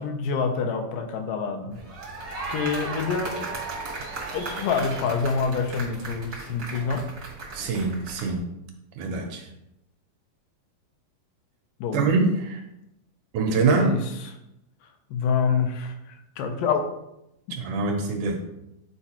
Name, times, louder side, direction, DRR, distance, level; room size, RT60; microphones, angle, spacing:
voice 1, 0.0-1.8 2.5-3.6 4.3-7.1 11.8-12.1 13.7-14.3 15.1-16.9, left 5 dB, 80° left, 5 dB, 2.2 m, -27 dB
sound 1, 1.7-8.4, right 3 dB, 55° right, 1.0 m, -36 dB
voice 2, 7.5-8.4 9.0-9.4 11.9-12.6 13.3-13.9 17.5-18.4, right 4 dB, 75° right, 3 dB, 2.0 m, -24 dB
8.8 x 4.4 x 2.9 m, 0.84 s
omnidirectional pair, 3.9 m